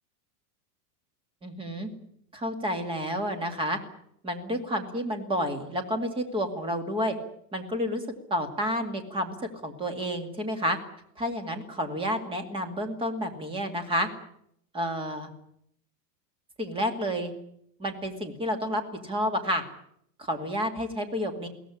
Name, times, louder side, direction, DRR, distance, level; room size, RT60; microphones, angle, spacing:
voice 1, 1.4-1.9 2.3-3.8 4.2-7.2 7.5-8.0 8.3-9.4 9.6-10.8 11.2-14.1 14.7-15.3 16.6-17.3 17.8-19.6 20.2-21.5, equal, 10° right, 7 dB, 2.4 m, -30 dB
22.5 x 17.0 x 9.9 m, 0.72 s
supercardioid pair, 175°, 49 cm